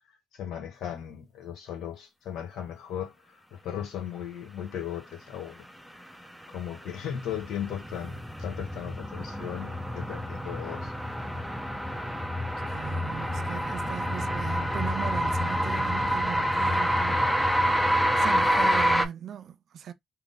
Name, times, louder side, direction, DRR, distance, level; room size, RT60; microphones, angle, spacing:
voice 1, 0.4-5.6 6.5-10.9, left 9 dB, 80° left, 1.3 m, -37 dB
sound 1, 6.3-19.0, equal, ahead, 0.7 m, -27 dB
voice 2, 12.7-17.3 18.0-19.9, right 9 dB, 65° right, 0.5 m, -38 dB
3.6 x 2.1 x 3.8 m
cardioid pair, 90°, 0 cm